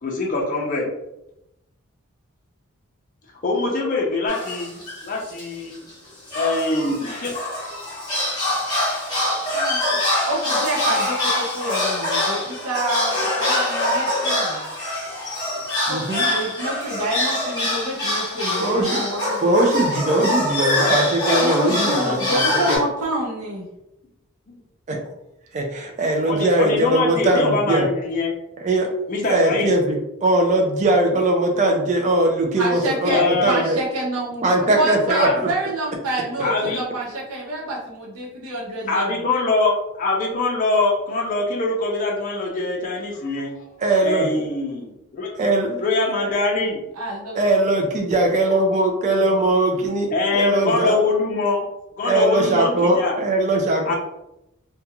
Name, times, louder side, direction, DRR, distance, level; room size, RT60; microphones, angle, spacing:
voice 1, 0.0-0.9 3.4-5.8 6.3-7.3 7.6-7.7 8.5-8.6 9.1-9.2 9.5-9.6 19.8-19.9 24.5-24.6 26.2-28.3 29.1-29.7 33.1-33.6 35.1-35.3 36.4-36.9 38.9-43.6 44.0-45.3 45.8-46.8 50.1-51.6 52.0-53.2 53.9-54.0, left 3 dB, 40° left, -1 dB, 0.5 m, -23 dB
sound 1, 4.3-5.1 5.4-5.5 5.7-5.9 6.3-22.8, left 1 dB, 20° left, 0.9 m, -24 dB
voice 2, 9.5-10.0 10.2-14.7 15.8-19.6 21.4-23.6 32.6-39.2 47.0-47.9, right 1 dB, 80° right, -4 dB, 0.8 m, -28 dB
voice 3, 15.9-16.3 18.6-19.0 19.4-22.8 24.9-25.0 25.5-27.9 28.6-28.9 29.1-33.8 34.4-35.3 43.8-44.3 45.4-45.8 47.4-51.0 52.0-54.0, right 2 dB, 35° right, 2 dB, 0.3 m, -20 dB
2.4 x 2.2 x 2.8 m, 0.86 s
head